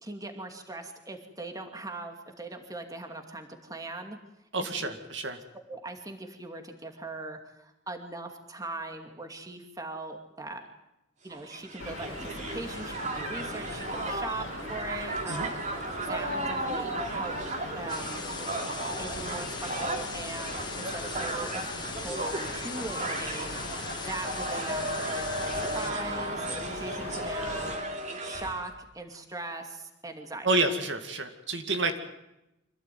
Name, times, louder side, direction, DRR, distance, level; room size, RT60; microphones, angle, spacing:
voice 1, 0.0-4.2 4.8-4.9 5.7-10.6 11.2-15.6 16.0-17.4 17.8-18.3 19.0-27.8 28.2-30.7, right 2 dB, 20° right, 4 dB, 2.5 m, -40 dB
voice 2, 4.5-5.4 15.3-15.5 30.4-32.0, right 2 dB, 65° right, 6 dB, 2.3 m, -29 dB
Crowd, 11.3-28.7, right 1 dB, 40° right, 3.2 m, -35 dB
sound 1, 11.8-27.8, left 2 dB, 90° left, 2.2 m, -41 dB
sound 2, 17.9-25.9, left 5 dB, 20° left, 1.7 m, -41 dB
25.5 x 16.5 x 9.4 m, 0.90 s
head